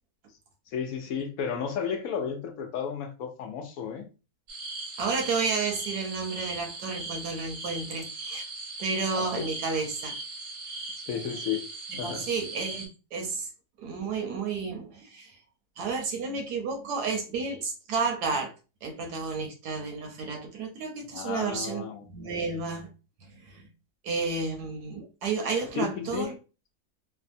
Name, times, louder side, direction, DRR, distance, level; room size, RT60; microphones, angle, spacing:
voice 1, 0.7-4.1 9.1-9.4 11.0-11.6 12.0-12.3 21.1-22.5 25.8-26.3, left 7 dB, 70° left, 1.0 m, -33 dB
sound 1, 4.5-12.9, right 3 dB, 50° right, 0.8 m, -38 dB
voice 2, 5.0-8.4 8.8-10.1 11.9-13.5 13.8-15.4 15.8-18.5 18.8-22.9 23.2-23.7 24.0-26.3, right 4 dB, 85° right, 1.3 m, -31 dB
3.3 x 2.0 x 2.6 m
omnidirectional pair, 1.7 m